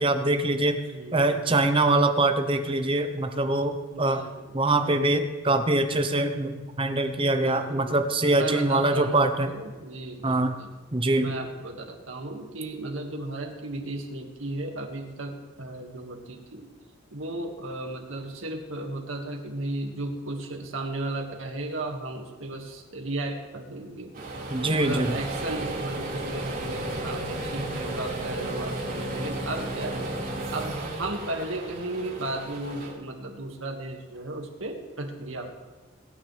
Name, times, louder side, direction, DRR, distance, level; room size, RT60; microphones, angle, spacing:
voice 1, 0.0-0.8 1.1-4.3 4.5-9.5 10.2-10.5 10.9-11.4 24.5-25.2, right 2 dB, 25° right, 7 dB, 0.9 m, -24 dB
voice 2, 0.9-1.5 3.9-4.6 7.3-10.7 11.2-16.7 17.1-24.1 24.7-35.5, right 2 dB, 80° right, 2 dB, 2.0 m, -35 dB
sound 1, 24.1-32.9, right 1 dB, 45° right, 4.7 m, -33 dB
21.5 x 9.4 x 3.4 m, 1.3 s
head